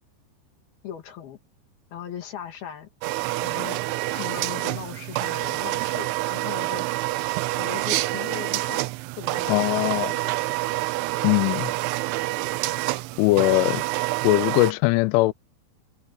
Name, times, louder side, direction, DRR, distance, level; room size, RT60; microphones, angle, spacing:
voice 1, 0.8-1.4 1.9-7.1 7.6-8.9 9.2-10.5, left 9 dB, 60° left, 3.5 m, -39 dB
sound 1, 3.0-14.7, right 20 dB, 85° right, 3.0 m, -27 dB
voice 2, 9.5-10.1 11.2-11.7 13.2-13.8 14.2-15.3, left 21 dB, 90° left, 3.1 m, -20 dB
omnidirectional pair, 5.4 m